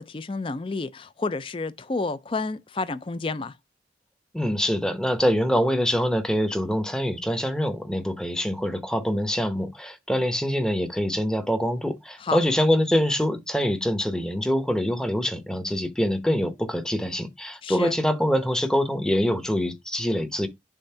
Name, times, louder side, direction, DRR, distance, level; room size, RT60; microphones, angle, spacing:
voice 1, 0.0-3.6 12.2-12.4 17.6-18.0, left 3 dB, 30° left, 0.4 m, -30 dB
voice 2, 4.3-20.5, equal, 5° left, 0.8 m, -24 dB
7.1 x 2.6 x 5.5 m
head